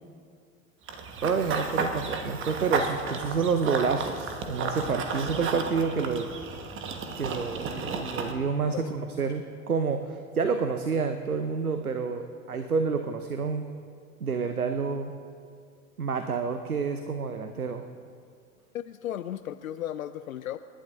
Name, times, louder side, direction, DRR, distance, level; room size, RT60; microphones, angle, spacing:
Run / Bird vocalization bird call bird song, 0.9-8.3, right 4 dB, 30° right, 1.3 m, -33 dB
voice 1, 1.2-6.3 7.2-13.6 14.2-15.1 16.0-17.8, right 5 dB, 90° right, 8 dB, 0.7 m, -29 dB
voice 2, 18.7-20.6, left 11 dB, 70° left, 11 dB, 0.5 m, -35 dB
28.5 x 11.0 x 2.6 m, 2.2 s
figure-of-eight pair, 80°, 42 cm